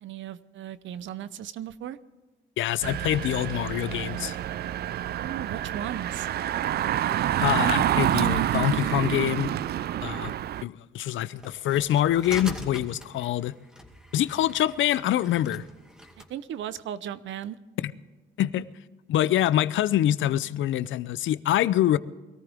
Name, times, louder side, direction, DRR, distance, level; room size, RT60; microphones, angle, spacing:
voice 1, 0.0-2.0 5.1-6.3 16.2-17.6, right 10 dB, 70° right, 0.8 m, -36 dB
voice 2, 2.6-4.4 7.4-9.5 10.0-10.3 10.6-13.5 14.1-15.6 17.8-17.9 18.4-18.6 19.1-22.0, left 12 dB, 75° left, 0.6 m, -25 dB
Engine, 2.8-10.6, right 12 dB, 55° right, 0.4 m, -27 dB
sound 1, 11.4-16.3, equal, 5° right, 2.3 m, -43 dB
22.5 x 14.0 x 3.5 m
cardioid pair, 90°, 20 cm